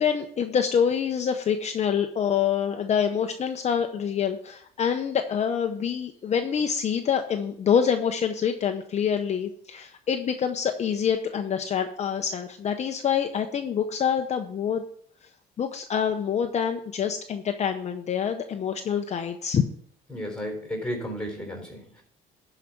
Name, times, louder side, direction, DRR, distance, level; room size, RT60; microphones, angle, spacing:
voice 1, 0.0-14.8 15.6-19.6, left 7 dB, 40° left, 6 dB, 0.8 m, -26 dB
voice 2, 20.1-22.0, equal, 5° left, 3 dB, 3.9 m, -33 dB
11.5 x 5.0 x 5.8 m, 0.62 s
cardioid pair, 110°, 17 cm